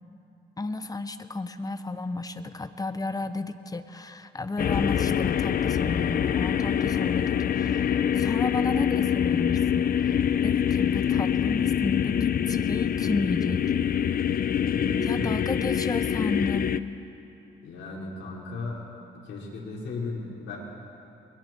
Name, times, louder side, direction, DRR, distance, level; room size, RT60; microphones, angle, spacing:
voice 1, 0.6-13.6 15.0-16.7, left 3 dB, 20° left, 10 dB, 1.1 m, -33 dB
sound 1, 4.6-16.8, left 8 dB, 50° left, 0.6 m, -25 dB
voice 2, 14.7-15.3 17.6-18.8 19.2-20.6, left 3 dB, 70° left, -4 dB, 5.0 m, -35 dB
28.0 x 21.5 x 4.6 m, 2.9 s
cardioid pair, 90°, 20 cm